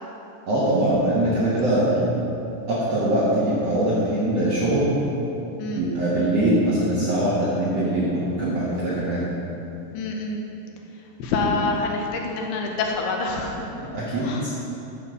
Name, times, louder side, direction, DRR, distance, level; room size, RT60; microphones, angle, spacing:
voice 1, 0.5-2.3 2.7-4.8 5.7-9.2 13.9-14.5, right 1 dB, 60° right, -8 dB, 1.7 m, -22 dB
voice 2, 9.9-10.4 11.2-13.7 14.2-14.4, left 3 dB, 80° left, 1 dB, 2.8 m, -26 dB
9.9 x 4.8 x 6.9 m, 3.0 s
omnidirectional pair, 4.6 m